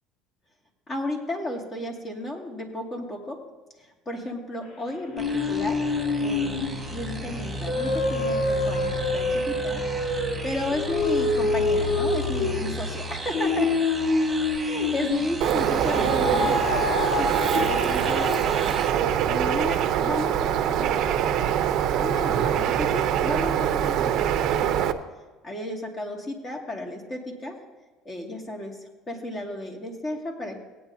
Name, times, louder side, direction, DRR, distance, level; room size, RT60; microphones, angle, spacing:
voice 1, 0.9-3.4 3.8-5.8 6.2-9.8 10.4-13.7 14.6-18.8 19.2-21.4 22.0-24.1 24.5-24.9 25.4-27.6 28.0-30.6, left 1 dB, 30° left, 1 dB, 2.2 m, -33 dB
sound 1, 5.1-15.3 15.9-18.6, left 3 dB, 65° left, 1.8 m, -26 dB
sound 2, 5.2-18.9, right 3 dB, 10° right, 1.7 m, -38 dB
Bird, 15.4-24.9, right 10 dB, 60° right, 0.7 m, -24 dB
18.0 x 9.1 x 2.8 m, 1.2 s
cardioid pair, 120°, 0 cm